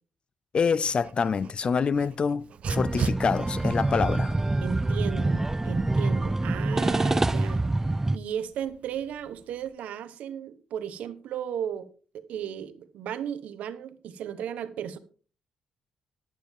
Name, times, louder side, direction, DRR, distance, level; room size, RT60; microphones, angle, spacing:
voice 1, 0.5-4.4, left 5 dB, 45° left, 0.5 m, -26 dB
Dog, 0.6-9.7, right 6 dB, 60° right, 0.8 m, -42 dB
sound 1, 2.7-8.2, right 2 dB, 15° right, 0.4 m, -26 dB
voice 2, 4.6-7.6 8.1-11.9 12.1-15.0, right 9 dB, 85° right, 1.1 m, -35 dB
11.5 x 11.0 x 3.6 m
cardioid pair, 85°, 2 cm